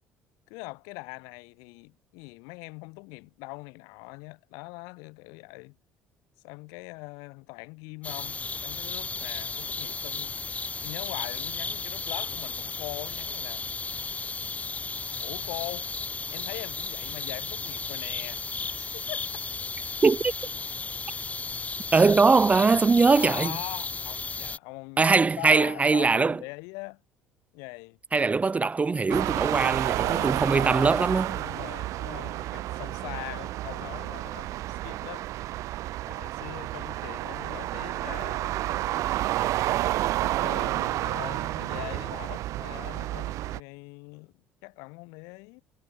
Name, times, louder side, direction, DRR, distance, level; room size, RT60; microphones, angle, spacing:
voice 1, 0.5-5.8 6.4-13.6 15.2-15.9 16.3-18.4 18.8-19.3 23.1-25.0 25.4-27.0 27.5-28.0 30.0-35.3 36.1-39.2 40.2-44.3 44.6-45.6, left 29 dB, 80° left, 3.8 m, -42 dB
sound 1, 8.0-24.6, left 4 dB, 25° left, 0.8 m, -34 dB
voice 2, 20.0-20.3 21.9-23.5 25.0-26.4 28.1-31.4, right 4 dB, 25° right, 0.6 m, -21 dB
sound 2, 29.1-43.6, right 15 dB, 65° right, 0.6 m, -30 dB
supercardioid pair, 70°, 6 cm